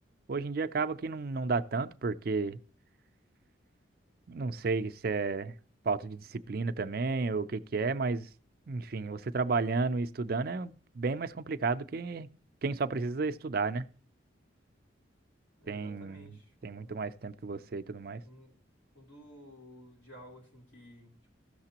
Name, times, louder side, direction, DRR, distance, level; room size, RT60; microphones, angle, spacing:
voice 1, 0.3-2.6 4.3-5.5 5.9-8.3 8.7-12.3 12.6-13.9 15.7-16.3 16.6-18.2, right 4 dB, 50° right, 0.4 m, -32 dB
voice 2, 15.6-17.0 18.2-18.5 18.9-21.3, equal, 85° left, 3.2 m, -54 dB
15.5 x 6.6 x 2.9 m
head